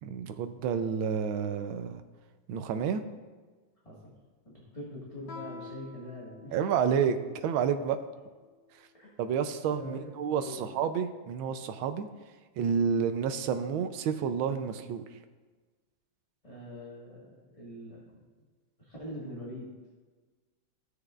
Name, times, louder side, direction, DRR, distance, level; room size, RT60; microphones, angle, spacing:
voice 1, 0.0-2.0 2.5-3.0 6.5-7.2 7.4-8.0 9.2-12.1 12.6-15.0, right 7 dB, 85° right, 9 dB, 1.4 m, -29 dB
voice 2, 4.4-6.5 8.9-9.1 9.7-10.8 12.8-12.9 16.4-18.1 18.8-19.7, left 1 dB, 20° left, -7 dB, 1.6 m, -43 dB
Guitar, 5.3-7.7, left 5 dB, 65° left, 1.9 m, -48 dB
16.0 x 6.5 x 2.4 m, 1.3 s
omnidirectional pair, 2.2 m